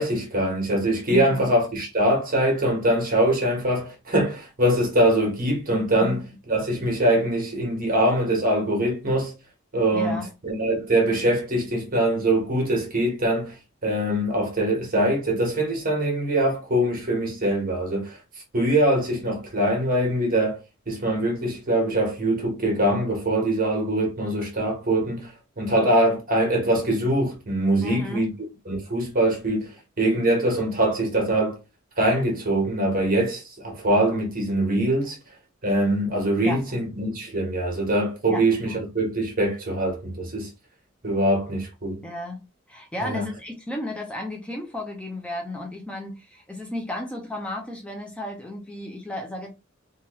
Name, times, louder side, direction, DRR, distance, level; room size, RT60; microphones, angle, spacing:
voice 1, 0.0-9.3 9.7-13.5 13.8-18.2 18.5-20.6 20.9-25.3 25.6-28.3 28.7-29.7 30.0-31.6 32.0-35.2 35.6-40.5 41.0-42.0 43.0-43.2, right 1 dB, 45° right, 1.3 m, -23 dB
voice 2, 1.1-1.5 6.0-6.1 9.9-10.3 27.8-28.3 36.4-36.6 38.3-38.4 42.0-42.4 42.7-49.5, left 1 dB, 5° left, 0.5 m, -33 dB
3.0 x 2.4 x 3.0 m
head